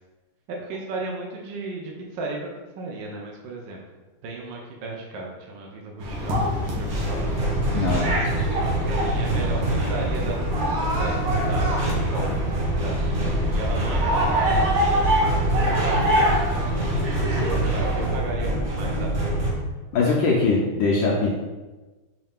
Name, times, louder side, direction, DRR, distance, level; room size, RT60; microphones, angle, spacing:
voice 1, 0.5-2.5 2.8-3.8 4.2-7.3 8.8-10.4 10.8-16.5 17.6-19.5, right 3 dB, 70° right, -1 dB, 1.2 m, -35 dB
sound 1, 6.0-18.1, equal, 90° right, 1.9 m, -26 dB
sound 2, 6.9-19.5, right 1 dB, 35° right, 1.0 m, -25 dB
voice 2, 7.7-8.2 19.9-21.3, left 3 dB, 70° left, -3 dB, 1.3 m, -21 dB
5.5 x 2.7 x 3.6 m, 1.2 s
omnidirectional pair, 2.3 m